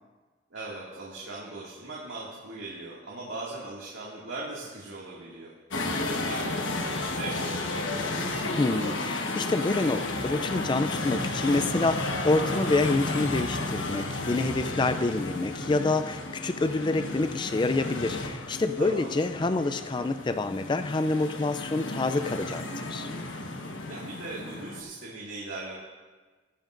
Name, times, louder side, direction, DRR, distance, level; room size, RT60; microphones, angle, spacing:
voice 1, 0.5-7.9 18.8-19.1 23.9-25.8, right 2 dB, 80° right, -6 dB, 2.1 m, -39 dB
sound 1, 5.7-24.8, left 2 dB, 80° left, 1.2 m, -33 dB
voice 2, 8.6-23.1, left 3 dB, 25° left, 10 dB, 0.3 m, -27 dB
21.5 x 10.5 x 2.6 m, 1.4 s
head